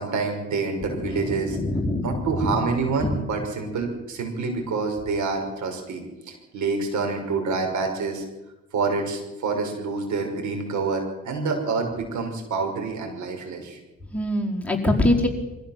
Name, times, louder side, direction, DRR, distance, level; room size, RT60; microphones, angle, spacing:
voice 1, 0.0-1.6 2.0-8.2 8.7-13.8, right 4 dB, 70° right, 4 dB, 6.0 m, -27 dB
voice 2, 0.8-2.1 2.4-2.5 14.1-15.3, left 1 dB, 5° left, -1 dB, 4.7 m, -24 dB
24.0 x 15.5 x 7.5 m, 1.0 s
cardioid pair, 90°, 30 cm